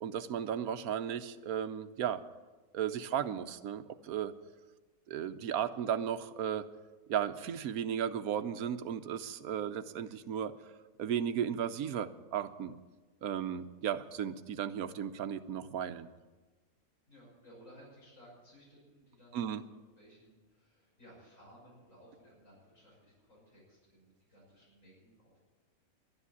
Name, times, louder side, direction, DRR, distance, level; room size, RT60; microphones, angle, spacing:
voice 1, 0.0-2.2 2.7-4.3 5.1-6.7 7.1-10.5 11.0-12.7 13.2-16.1 19.3-19.6, right 9 dB, 85° right, 11 dB, 1.2 m, -35 dB
voice 2, 17.1-25.4, equal, 60° left, -6 dB, 6.6 m, -59 dB
12.0 x 10.0 x 9.6 m, 1.3 s
omnidirectional pair, 1.5 m